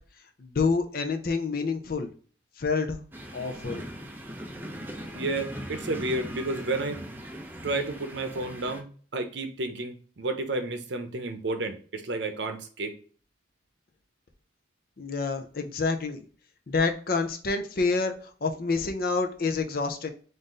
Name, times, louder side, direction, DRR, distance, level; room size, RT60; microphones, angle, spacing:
voice 1, 0.4-2.1 2.6-3.0 3.3-3.9 15.0-16.3 16.7-18.2 18.4-20.1, left 4 dB, 50° left, 5 dB, 0.5 m, -28 dB
sound 1, 3.1-8.8, equal, 10° right, 0.5 m, -39 dB
voice 2, 5.1-7.0 7.6-12.9, right 2 dB, 70° right, 7 dB, 0.7 m, -31 dB
3.7 x 2.6 x 3.8 m, 0.43 s
head